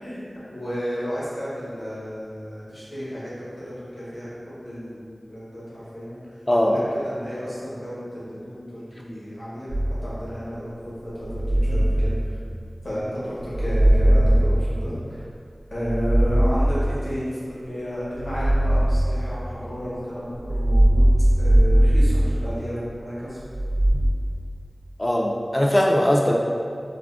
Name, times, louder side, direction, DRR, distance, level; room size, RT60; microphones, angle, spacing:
voice 1, 0.0-6.2 6.6-9.7 10.0-12.2 12.8-15.2 15.7-17.4 17.6-21.1 21.4-23.4, equal, 75° left, -10 dB, 0.8 m, -32 dB
voice 2, 6.5-6.8 25.0-26.3, left 1 dB, 25° left, -1 dB, 0.3 m, -20 dB
sound 1, 9.7-10.4 11.2-12.8 13.4-15.2 15.7-17.3 18.1-19.8 20.4-22.9 23.5-24.1, right 1 dB, 60° right, 0.4 m, -20 dB
3.5 x 2.0 x 2.3 m, 2.3 s
wide cardioid pair, 65°, 0 cm